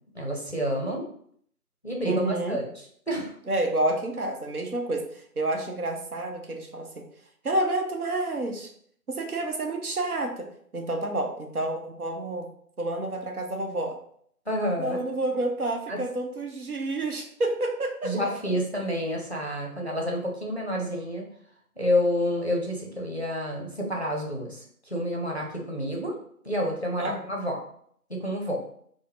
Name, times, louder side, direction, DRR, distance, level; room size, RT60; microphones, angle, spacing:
voice 1, 0.1-1.1 1.8-2.2 2.5-2.7 3.1-3.3 14.5-15.0 15.9-16.0 18.0-21.3 21.8-26.2 26.4-27.6 28.1-28.6, equal, 45° left, 0 dB, 0.5 m, -29 dB
voice 2, 2.1-2.6 3.5-7.0 7.4-8.7 9.1-10.5 10.7-12.5 12.8-14.0 14.8-18.1 27.0-27.2, right 2 dB, 70° right, 3 dB, 0.7 m, -29 dB
3.4 x 2.0 x 2.8 m, 0.63 s
figure-of-eight pair, 175°, 47 cm